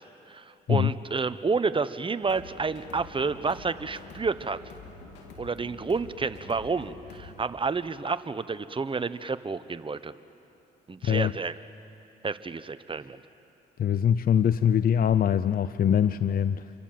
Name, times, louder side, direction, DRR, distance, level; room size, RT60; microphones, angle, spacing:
voice 1, 0.3-4.6 5.4-10.1 10.9-11.5 12.2-13.2, right 4 dB, 30° right, 12 dB, 1.1 m, -30 dB
sound 1, 2.2-7.4, left 3 dB, 90° left, 3.2 m, -47 dB
voice 2, 13.8-16.7, left 8 dB, 55° left, 13 dB, 0.6 m, -23 dB
29.0 x 25.0 x 7.6 m, 3.0 s
supercardioid pair, 65°, 18 cm